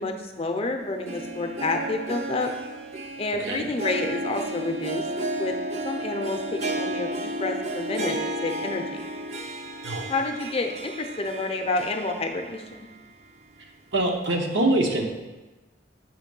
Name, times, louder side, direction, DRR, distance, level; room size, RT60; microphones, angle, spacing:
voice 1, 0.0-2.5 3.2-5.0 5.4-5.6 5.8-8.2 8.4-9.1 10.1-12.6, left 2 dB, 30° left, 4 dB, 0.5 m, -29 dB
Harp, 0.8-12.9 13.3-13.4 14.2-14.3, right 1 dB, 35° right, 0.5 m, -33 dB
voice 2, 13.9-15.1, right 2 dB, 75° right, 2 dB, 0.9 m, -24 dB
7.2 x 3.1 x 5.2 m, 1.2 s
head